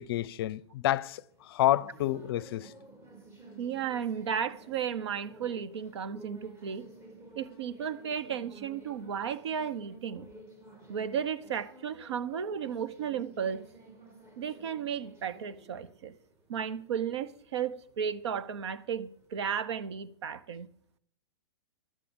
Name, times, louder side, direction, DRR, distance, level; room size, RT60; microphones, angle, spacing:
voice 1, 0.0-2.7, left 14 dB, 55° left, 0.5 m, -29 dB
sound 1, 0.9-19.3, right 2 dB, 20° right, 2.3 m, -53 dB
voice 2, 3.6-6.8 7.3-10.3 10.9-13.6 14.4-16.1 16.5-20.7, right 8 dB, 70° right, 0.9 m, -34 dB
12.5 x 8.4 x 5.2 m
hypercardioid pair, 120°, 15 cm